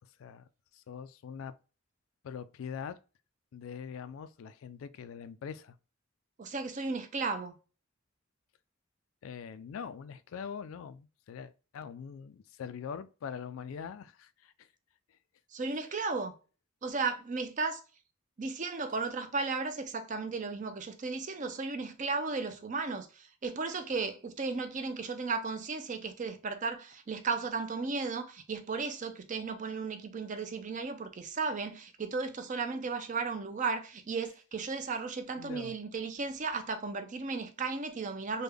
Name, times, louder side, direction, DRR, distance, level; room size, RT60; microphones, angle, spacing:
voice 1, 0.7-1.5 2.2-3.0 3.5-5.8 9.2-14.7 35.4-35.7, left 7 dB, 75° left, 0.3 m, -43 dB
voice 2, 6.4-7.6 15.5-16.3 16.8-17.8 18.4-38.4, right 4 dB, 35° right, 0.5 m, -35 dB
3.4 x 2.2 x 3.3 m
head